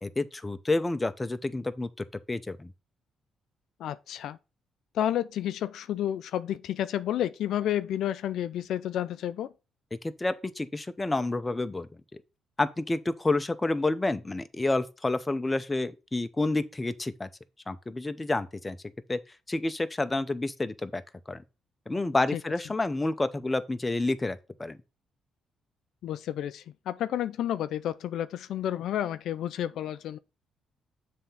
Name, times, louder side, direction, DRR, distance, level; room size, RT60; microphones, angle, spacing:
voice 1, 0.0-2.7 9.9-11.9 12.6-17.3 17.7-18.8 19.1-19.2 19.5-21.0 21.3-21.4 21.9-24.8, left 2 dB, 20° left, 0.6 m, -29 dB
voice 2, 3.8-4.4 4.9-9.5 22.3-22.4 26.0-30.2, left 11 dB, 75° left, 0.4 m, -31 dB
7.4 x 3.5 x 5.6 m
cardioid pair, 90°, 0 cm